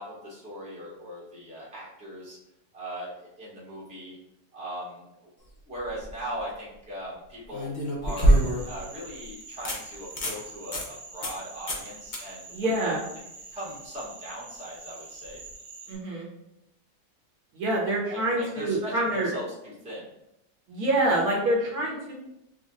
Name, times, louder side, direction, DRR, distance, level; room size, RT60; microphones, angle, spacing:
voice 1, 0.0-2.4 2.7-4.2 4.5-5.1 5.7-7.7 8.0-15.4 18.1-20.1, equal, 5° right, -7 dB, 0.8 m, -39 dB
sound 1, 5.8-6.1 7.5-8.8 9.2-9.3 9.6-9.8 10.1-10.4 10.7-10.9 11.2-11.4 11.7-11.9 12.1-12.2 15.3-15.4, right 1 dB, 45° left, 0.6 m, -24 dB
sound 2, 8.1-15.9, right 3 dB, 85° right, 2.0 m, -46 dB
voice 2, 12.5-13.0 15.9-16.3 17.5-19.3 20.7-22.1, right 1 dB, 65° right, -4 dB, 1.4 m, -26 dB
6.2 x 2.2 x 2.6 m, 0.85 s
omnidirectional pair, 1.9 m